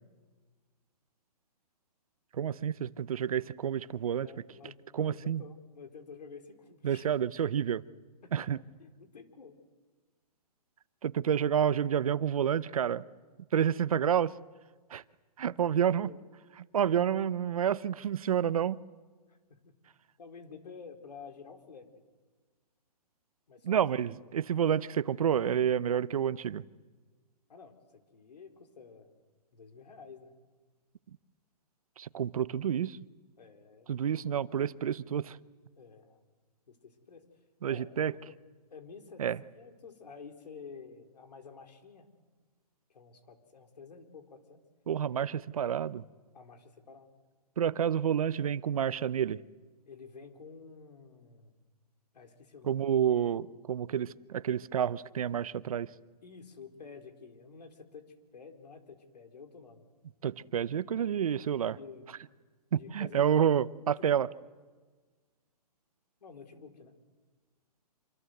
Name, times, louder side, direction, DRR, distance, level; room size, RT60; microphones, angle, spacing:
voice 1, 2.3-4.3 4.9-5.4 6.8-7.8 8.3-8.6 11.0-13.0 13.5-14.3 14.9-15.0 15.4-16.1 16.7-18.8 23.6-26.6 32.0-33.0 33.9-35.4 37.6-38.1 39.2-39.4 44.9-46.0 47.6-49.4 52.6-55.9 60.2-61.8 62.7-64.3, right 9 dB, 60° right, 0.8 m, -29 dB
voice 2, 4.2-7.1 8.2-8.5 8.8-9.6 15.4-16.2 19.3-19.7 20.2-21.9 23.5-23.8 27.5-29.1 29.5-30.3 33.4-33.9 35.8-36.2 36.7-37.2 37.7-38.4 38.7-39.2 39.6-42.1 42.9-44.6 46.3-47.1 49.8-51.5 52.1-52.9 56.2-59.8 61.8-62.1 62.7-63.5 64.0-64.1 66.2-66.9, left 5 dB, 80° left, 4.1 m, -50 dB
26.5 x 26.0 x 7.9 m
hypercardioid pair, 170°, 21 cm